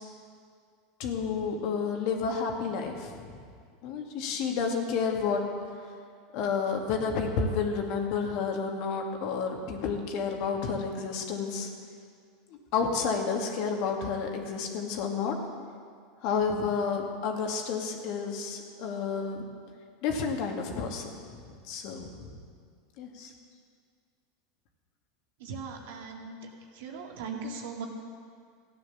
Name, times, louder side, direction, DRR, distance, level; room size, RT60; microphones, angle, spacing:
voice 1, 1.0-3.4 3.8-5.4 6.3-11.7 12.5-15.4 16.2-19.4 20.0-22.4 23.0-23.3, left 5 dB, 60° left, 2 dB, 2.2 m, -30 dB
voice 2, 25.4-26.4 26.8-27.9, right 4 dB, 75° right, 1 dB, 2.1 m, -39 dB
14.5 x 9.6 x 7.2 m, 2.1 s
hypercardioid pair, 105°, 0 cm